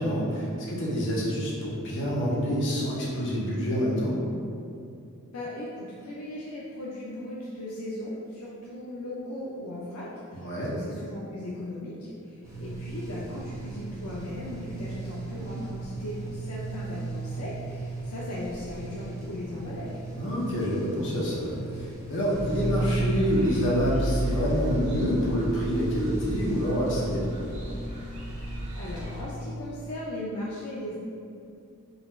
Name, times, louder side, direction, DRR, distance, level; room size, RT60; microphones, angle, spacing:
voice 1, 0.0-4.1 10.3-10.7 20.2-27.3, equal, 55° left, -6 dB, 1.0 m, -27 dB
voice 2, 5.3-20.0 28.7-31.0, left 1 dB, 85° left, -5 dB, 0.5 m, -37 dB
sound 1, 12.4-26.6, right 3 dB, 15° right, 0.6 m, -39 dB
sound 2, 22.3-29.2, right 1 dB, 80° right, 1.4 m, -32 dB
4.0 x 2.3 x 4.2 m, 2.5 s
head